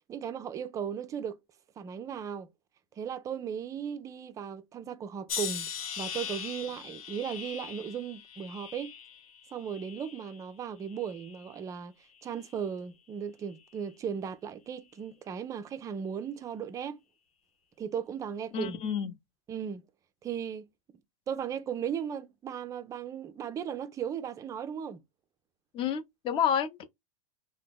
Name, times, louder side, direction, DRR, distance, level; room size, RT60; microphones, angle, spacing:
voice 1, 0.1-1.4 1.8-2.5 3.0-8.9 9.5-11.9 12.2-17.0 17.8-18.8 19.5-19.9 20.2-20.7 21.3-25.0, right 8 dB, 20° right, 0.4 m, -36 dB
sound 1, 5.3-10.4 10.9-11.6 12.3-12.6, left 8 dB, 80° left, 0.9 m, -40 dB
voice 2, 18.5-19.1 25.7-26.8, left 8 dB, 30° left, 0.6 m, -29 dB
2.8 x 2.0 x 3.4 m
hypercardioid pair, 120°, 18 cm